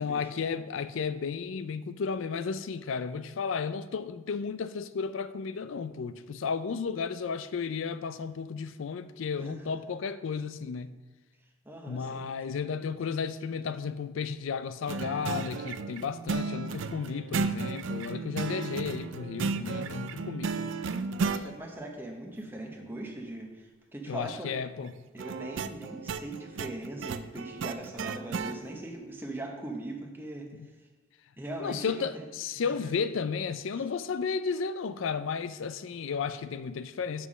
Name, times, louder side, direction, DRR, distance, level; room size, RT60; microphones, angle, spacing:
voice 1, 0.0-10.9 11.9-20.7 21.3-21.4 24.1-25.0 30.5-30.7 31.6-37.3, left 5 dB, 70° left, 0.4 m, -33 dB
voice 2, 11.6-12.2 21.2-24.6 25.1-30.5 31.4-32.1 32.7-32.9, right 1 dB, 10° right, 0.9 m, -40 dB
sound 1, 14.9-21.4 25.2-28.6, right 4 dB, 65° right, 0.4 m, -34 dB
5.8 x 5.8 x 6.1 m
head